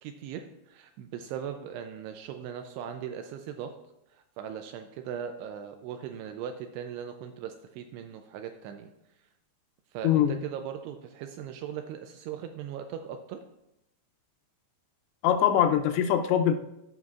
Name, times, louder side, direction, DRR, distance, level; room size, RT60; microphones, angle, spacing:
voice 1, 0.0-3.7 4.1-8.9 9.9-13.4, right 8 dB, 85° right, 6 dB, 2.5 m, -39 dB
voice 2, 10.0-10.3 15.2-16.6, left 10 dB, 90° left, 7 dB, 3.0 m, -22 dB
15.5 x 5.5 x 2.4 m, 0.85 s
omnidirectional pair, 5.1 m